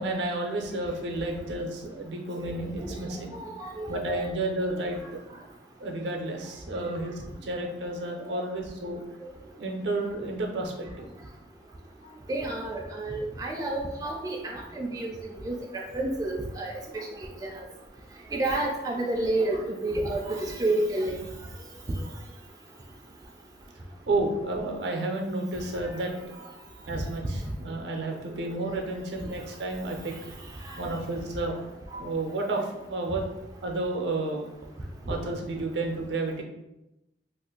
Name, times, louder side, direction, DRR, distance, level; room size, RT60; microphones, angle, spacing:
voice 1, 0.0-3.4 3.9-5.0 5.8-9.0 9.6-11.1 22.0-22.1 24.1-26.1 26.9-30.1 30.8-31.7 32.0-33.3 33.6-34.5 35.1-36.4, right 2 dB, 70° right, 2 dB, 0.5 m, -31 dB
voice 2, 3.3-3.9 8.3-8.4 12.3-15.1 15.4-16.7 17.4-17.5 18.3-21.2, right 2 dB, 20° right, -1 dB, 0.3 m, -29 dB
2.5 x 2.5 x 3.7 m, 0.94 s
head